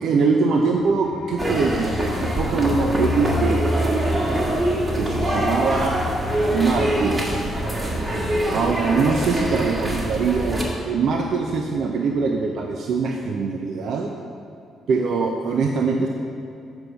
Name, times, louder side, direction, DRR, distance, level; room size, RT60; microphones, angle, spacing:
voice 1, 0.0-4.2 4.9-5.9 6.5-7.4 8.5-14.1 14.9-16.1, right 4 dB, 70° right, 2 dB, 0.6 m, -23 dB
sound 1, 0.9-10.5 10.7-10.9 11.1-11.6, left 2 dB, 65° left, 0.8 m, -31 dB
sound 2, 1.4-10.6, right 1 dB, 30° right, 1.8 m, -24 dB
8.2 x 5.3 x 5.6 m, 2.6 s
cardioid pair, 75°, 0 cm